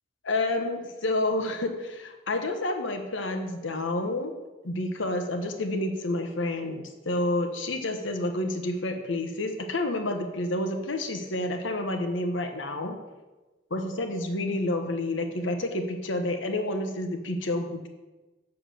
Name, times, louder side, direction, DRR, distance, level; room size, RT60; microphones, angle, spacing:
voice 1, 0.2-4.3 4.6-13.0 13.7-17.9, left 2 dB, 75° left, 5 dB, 1.2 m, -29 dB
8.4 x 6.8 x 6.8 m, 1.1 s
head